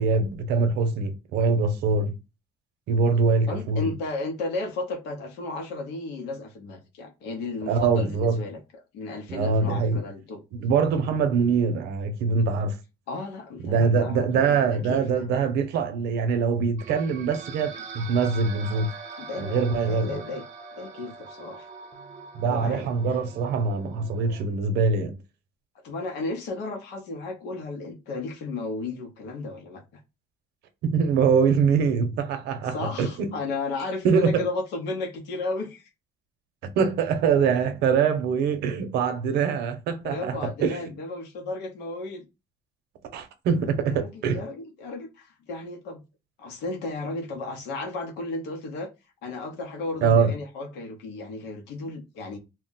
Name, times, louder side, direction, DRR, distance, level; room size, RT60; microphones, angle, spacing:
voice 1, 0.0-2.2 2.9-3.9 7.7-8.4 9.3-10.0 10.6-12.8 13.6-18.9 19.4-20.1 22.3-25.1 30.8-33.3 34.0-34.4 36.7-40.8 43.1-44.4 50.0-50.3, right 5 dB, 80° right, 0.7 m, -23 dB
voice 2, 3.5-8.6 8.9-10.4 13.1-15.2 19.2-20.4 20.8-21.7 22.4-22.9 25.8-30.0 32.7-35.9 40.0-42.2 43.9-46.0 46.4-48.9 49.2-52.4, left 3 dB, 85° left, 0.9 m, -34 dB
sound 1, 16.8-24.4, right 5 dB, 45° right, 0.6 m, -42 dB
2.3 x 2.1 x 3.9 m
cardioid pair, 110°, 17 cm